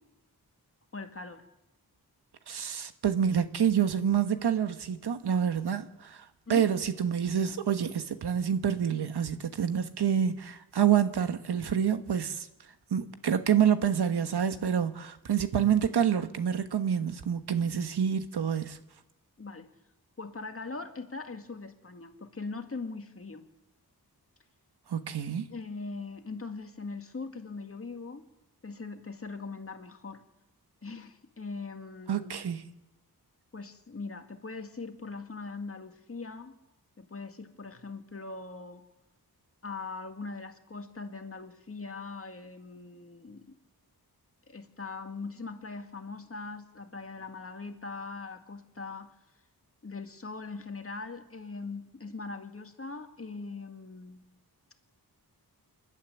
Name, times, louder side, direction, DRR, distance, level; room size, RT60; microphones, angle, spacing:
voice 1, 0.9-1.4 6.5-6.6 19.4-19.7 20.2-23.5 25.5-28.2 28.6-30.2 30.8-32.3 33.5-36.6 37.0-38.8 39.6-43.6 44.5-49.1 49.8-54.2, left 4 dB, 35° left, 2.0 m, -41 dB
voice 2, 2.5-6.2 6.5-12.5 12.9-18.8 24.9-25.5 32.1-32.7, right 8 dB, 90° right, 1.4 m, -27 dB
28.0 x 11.5 x 9.8 m
wide cardioid pair, 140°, 38 cm